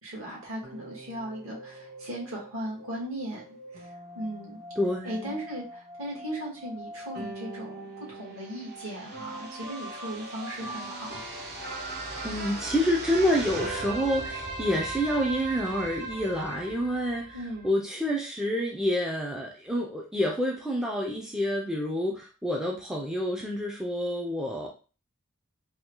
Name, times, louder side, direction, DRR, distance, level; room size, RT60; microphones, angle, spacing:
voice 1, 0.0-4.6 5.0-11.2 17.3-17.7, right 1 dB, 65° right, -4 dB, 1.7 m, -37 dB
sound 1, 0.6-17.7, right 2 dB, 45° right, 0.8 m, -39 dB
voice 2, 4.8-5.4 12.0-17.4 17.6-24.7, equal, 5° right, -2 dB, 0.4 m, -28 dB
3.5 x 2.3 x 2.9 m, 0.35 s
head